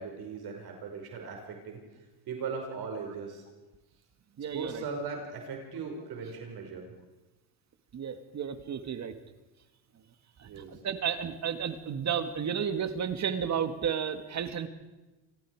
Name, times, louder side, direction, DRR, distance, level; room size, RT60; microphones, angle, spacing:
voice 1, 0.0-1.8 2.3-3.4 4.5-6.8 10.4-10.7, right 5 dB, 50° right, 2 dB, 5.5 m, -38 dB
voice 2, 4.4-4.8 7.9-9.1 9.9-10.0 10.4-14.7, right 7 dB, 35° right, 9 dB, 2.1 m, -32 dB
27.5 x 19.5 x 4.9 m, 1.1 s
cardioid pair, 115°, 46 cm